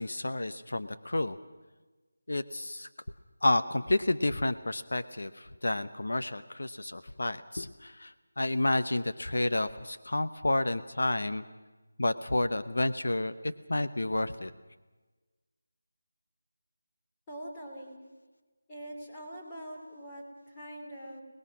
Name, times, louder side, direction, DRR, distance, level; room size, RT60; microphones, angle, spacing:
voice 1, 0.0-1.4 2.3-2.9 3.4-11.4 12.0-14.5, left 2 dB, 75° left, 10 dB, 1.0 m, -30 dB
voice 2, 17.3-18.0 18.7-21.2, right 1 dB, 15° left, -2 dB, 3.0 m, -43 dB
29.5 x 20.0 x 6.1 m, 1.3 s
figure-of-eight pair, 175°, 0 cm